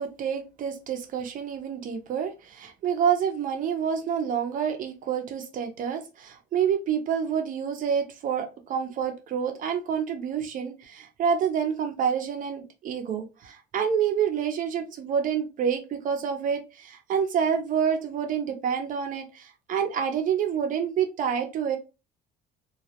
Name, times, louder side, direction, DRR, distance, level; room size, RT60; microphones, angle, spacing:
voice 1, 0.0-21.8, right 7 dB, 50° right, 6 dB, 0.6 m, -28 dB
2.3 x 2.0 x 2.8 m, 0.28 s
cardioid pair, 110°, 17 cm